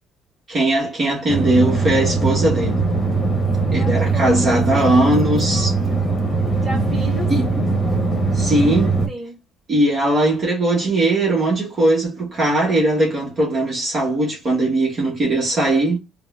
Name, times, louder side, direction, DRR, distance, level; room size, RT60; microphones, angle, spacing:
voice 1, 0.5-2.8 3.7-5.8 7.3-7.5 8.3-9.0 9.7-16.0, right 1 dB, 40° right, 1.1 m, -19 dB
ambient flight, 1.3-9.1, right 3 dB, 20° left, 1.1 m, -20 dB
voice 2, 3.1-3.4 3.7-4.8 6.6-7.3 9.1-9.4, right 2 dB, 15° right, 1.8 m, -33 dB
3.7 x 2.2 x 2.3 m
cardioid pair, 110°, 0 cm